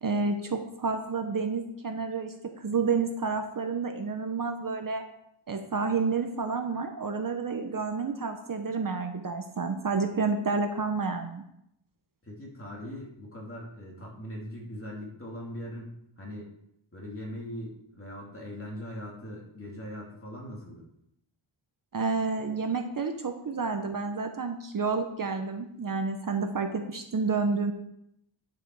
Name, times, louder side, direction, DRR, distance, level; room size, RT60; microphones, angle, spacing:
voice 1, 0.0-5.1 5.5-11.4 21.9-27.7, right 4 dB, 45° right, 5 dB, 0.8 m, -30 dB
voice 2, 12.2-16.5 16.9-20.8, equal, 25° left, -3 dB, 2.9 m, -40 dB
10.0 x 7.7 x 4.7 m, 0.78 s
wide cardioid pair, 145°, 49 cm